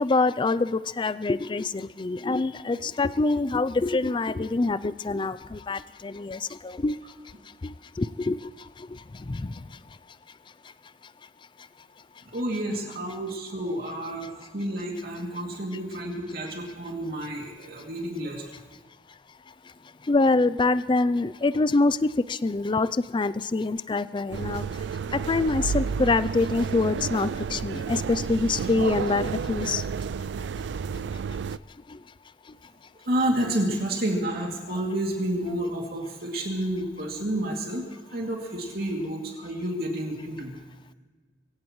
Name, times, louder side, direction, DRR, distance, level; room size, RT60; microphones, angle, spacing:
voice 1, 0.0-7.0 7.6-8.4 9.3-9.5 20.1-24.7 25.1-29.8, left 3 dB, 30° left, 16 dB, 0.4 m, -25 dB
voice 2, 12.3-18.5 33.0-40.6, right 1 dB, 60° right, -1 dB, 2.6 m, -30 dB
sound 1, 24.3-31.6, right 6 dB, 85° right, 0.4 m, -31 dB
23.5 x 16.5 x 3.1 m, 1.4 s
head